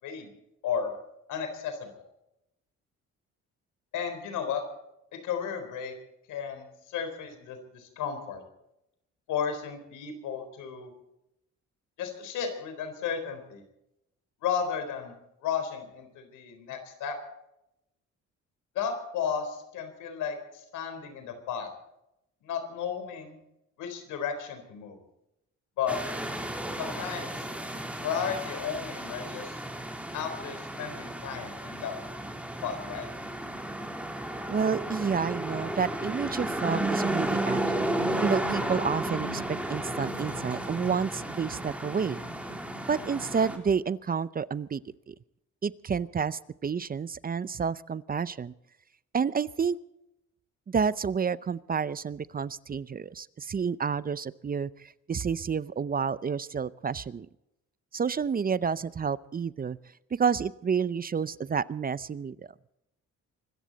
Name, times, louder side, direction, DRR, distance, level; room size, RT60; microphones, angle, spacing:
voice 1, 1.3-2.0 3.9-4.6 5.1-5.9 6.3-8.4 9.3-10.9 12.0-13.6 14.4-15.2 15.4-17.2 18.7-21.7 22.4-23.4 23.8-25.0 25.8-26.0 26.8-27.4 28.0-29.6 30.1-32.0 32.6-33.1, left 7 dB, 90° left, 7 dB, 4.0 m, -34 dB
sound 1, 25.9-43.6, right 1 dB, 5° right, 3.5 m, -33 dB
voice 2, 34.5-39.4 39.7-42.2 42.9-44.8 45.1-45.2 45.6-48.5 49.1-49.8 50.7-57.3 57.9-59.8 60.1-62.4, right 6 dB, 30° right, 18 dB, 0.6 m, -30 dB
24.5 x 14.0 x 4.1 m, 0.85 s
cardioid pair, 90°, 30 cm